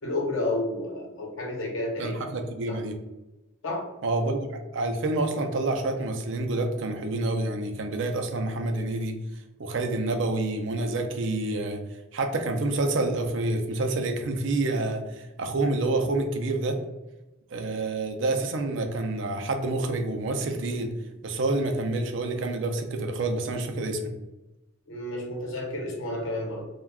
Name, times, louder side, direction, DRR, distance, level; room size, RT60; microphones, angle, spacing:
voice 1, 0.0-2.2 2.7-2.8 3.6-3.8 24.9-26.7, left 2 dB, 80° left, 0 dB, 0.8 m, -31 dB
voice 2, 2.0-3.0 4.0-9.2 9.6-11.8 12.1-16.8 17.5-20.9 21.2-24.1, right 2 dB, 65° right, 5 dB, 0.4 m, -28 dB
2.2 x 2.2 x 3.4 m, 1.0 s
head